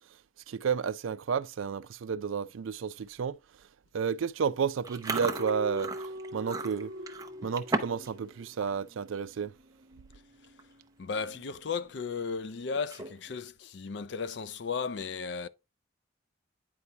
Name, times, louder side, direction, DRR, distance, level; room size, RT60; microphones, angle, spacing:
voice 1, 0.5-3.4 3.9-5.9 6.3-6.9 7.4-9.5, right 6 dB, 80° right, 0.4 m, -31 dB
Chewing mastication, 4.8-8.1 8.4-8.7 9.2-9.4 10.1-10.2 10.4-10.8 11.2-11.3 12.8-13.3, right 3 dB, 20° right, 0.6 m, -35 dB
sound 1, 5.3-12.1 12.4-12.6, left 2 dB, 45° right, 0.9 m, -44 dB
voice 2, 11.0-15.5, left 5 dB, 60° left, 0.4 m, -35 dB
9.7 x 4.6 x 2.8 m
head